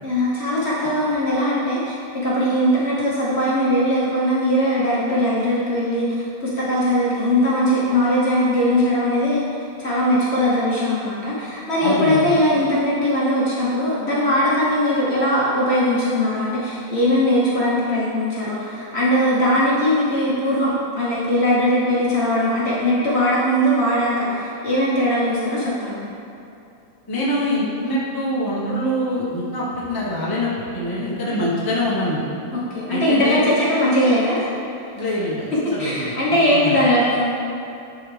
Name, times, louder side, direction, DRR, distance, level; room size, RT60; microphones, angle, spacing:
voice 1, 0.0-9.5 9.8-26.0 31.3-31.4 32.5-34.5 34.8-34.9 35.8-37.3, equal, 45° left, -8 dB, 1.1 m, -20 dB
voice 2, 11.8-12.3 27.1-32.3 32.9-33.4 35.0-36.1 36.5-36.8, left 1 dB, 15° left, -7 dB, 0.8 m, -24 dB
10.5 x 3.8 x 3.3 m, 2.6 s
omnidirectional pair, 2.0 m